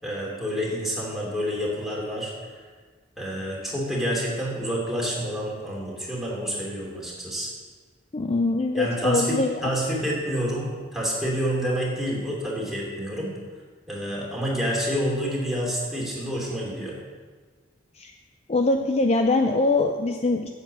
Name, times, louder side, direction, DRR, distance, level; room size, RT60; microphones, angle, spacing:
voice 1, 0.0-2.3 3.2-7.5 8.7-13.3 13.9-17.0, equal, ahead, -5 dB, 2.8 m, -28 dB
voice 2, 8.1-9.6 18.0-18.1 18.5-20.5, left 2 dB, 35° left, 4 dB, 0.5 m, -23 dB
8.8 x 8.2 x 6.8 m, 1.5 s
head